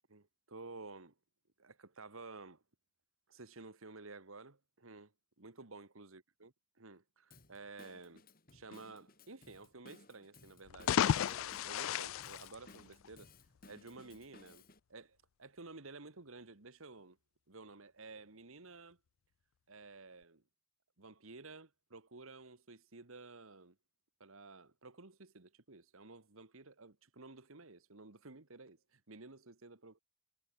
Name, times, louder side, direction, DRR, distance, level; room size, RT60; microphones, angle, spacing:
voice 1, 0.1-1.2 1.6-2.6 3.3-8.2 8.5-13.3 13.7-14.6 14.9-17.2 17.5-19.0 19.7-20.4 21.0-23.8 24.2-30.0, right 3 dB, 75° right, 1.7 m, -53 dB
Drum kit / Drum, 7.3-14.8, left 2 dB, 40° left, 4.9 m, -61 dB
sound 1, 10.7-13.3, left 9 dB, 70° left, 0.3 m, -34 dB
head